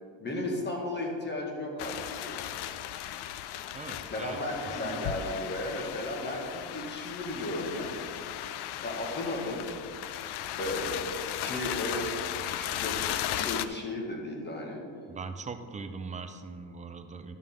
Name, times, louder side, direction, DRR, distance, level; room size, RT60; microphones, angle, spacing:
voice 1, 0.2-2.5 4.1-7.9 8.8-9.7 10.6-13.0 13.3-14.8, left 1 dB, 20° left, 0 dB, 1.7 m, -35 dB
sound 1, 1.8-13.6, left 12 dB, 60° left, 0.5 m, -36 dB
voice 2, 3.7-4.4 4.7-5.3 15.1-17.4, right 4 dB, 15° right, 7 dB, 0.5 m, -41 dB
12.5 x 6.4 x 3.7 m, 2.3 s
cardioid pair, 125°, 46 cm